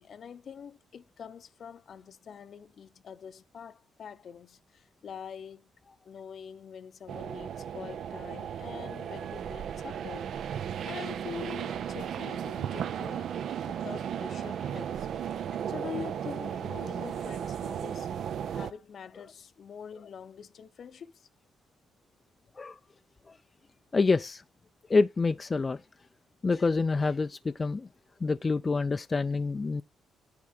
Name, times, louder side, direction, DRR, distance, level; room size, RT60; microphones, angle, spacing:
voice 1, 0.0-5.7 6.0-10.3 10.8-13.3 13.7-15.4 15.7-18.1 18.5-21.3, left 7 dB, 55° left, 0.7 m, -44 dB
sound 1, 7.1-18.7, right 8 dB, 65° right, 0.5 m, -35 dB
voice 2, 23.9-24.4 24.9-25.8 26.4-27.9 28.2-29.8, left 4 dB, 30° left, 0.3 m, -27 dB
9.6 x 3.7 x 5.9 m
cardioid pair, 90°, 0 cm